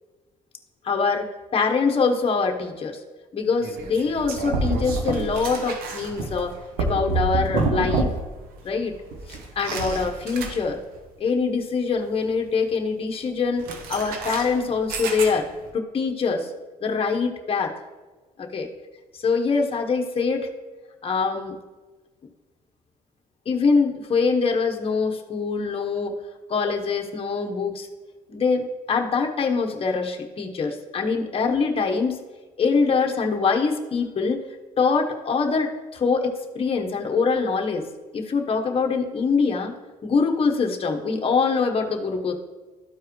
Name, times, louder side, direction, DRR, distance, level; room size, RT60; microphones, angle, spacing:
voice 1, 0.8-1.3 1.5-3.0 3.3-6.5 6.8-8.1 8.6-9.0 9.3-10.8 11.2-15.5 15.7-16.5 16.8-17.8 18.4-18.7 19.2-20.5 21.0-21.5 23.5-26.1 26.5-27.9 28.3-32.2 32.6-34.5 34.8-37.9 38.1-39.7 40.0-42.3, left 4 dB, 40° left, 2 dB, 1.1 m, -24 dB
sound 1, 3.6-8.4 8.7-11.0 13.6-15.7, right 3 dB, 85° right, 0.9 m, -28 dB
13.0 x 4.6 x 3.1 m, 1.3 s
cardioid pair, 80°, 15 cm